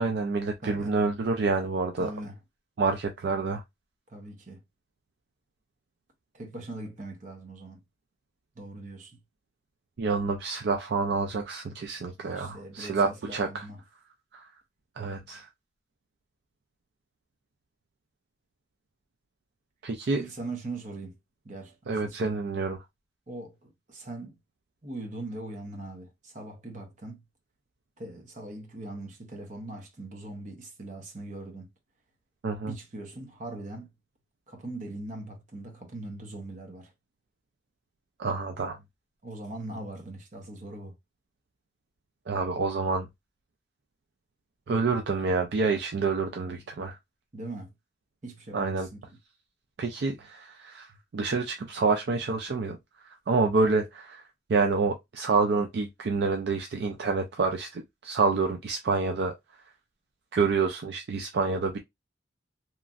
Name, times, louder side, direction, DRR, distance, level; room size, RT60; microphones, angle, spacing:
voice 1, 0.0-2.1 2.8-3.6 10.0-13.6 14.3-14.5 15.0-15.5 19.8-20.2 21.9-22.8 32.4-32.7 38.2-38.8 42.3-43.1 44.7-47.0 48.5-48.9 49.8-50.9 51.1-52.8 53.3-54.2 54.5-59.3 60.3-61.8, right 4 dB, 60° right, 0.4 m, -27 dB
voice 2, 0.6-1.0 2.0-2.4 4.1-4.6 6.3-7.8 8.6-9.2 12.2-13.8 20.1-21.2 21.4-22.4 23.3-24.3 24.8-27.2 28.0-31.7 32.6-33.9 34.5-36.9 39.2-40.9 47.3-47.7 48.2-49.0, right 2 dB, 40° right, 0.8 m, -40 dB
3.0 x 2.4 x 2.4 m
head